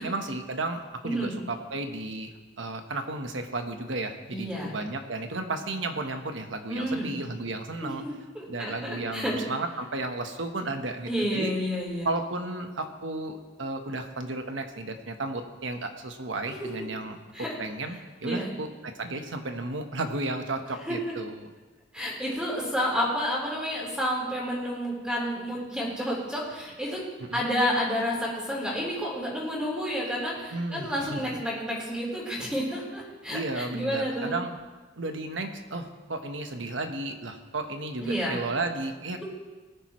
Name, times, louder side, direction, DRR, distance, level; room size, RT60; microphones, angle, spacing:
voice 1, 0.0-8.0 8.5-11.5 12.0-17.2 17.6-21.5 27.3-27.4 30.5-31.4 33.3-34.5 35.0-39.2, right 2 dB, 90° right, 5 dB, 1.2 m, -33 dB
voice 2, 1.0-1.3 4.3-4.7 6.7-7.2 7.8-7.9 8.3-9.3 11.1-12.1 17.3-17.5 18.2-18.5 20.9-21.0 21.9-27.0 27.3-34.3 38.0-38.4, equal, 5° right, -5 dB, 3.9 m, -30 dB
19.0 x 10.0 x 3.2 m, 1.3 s
head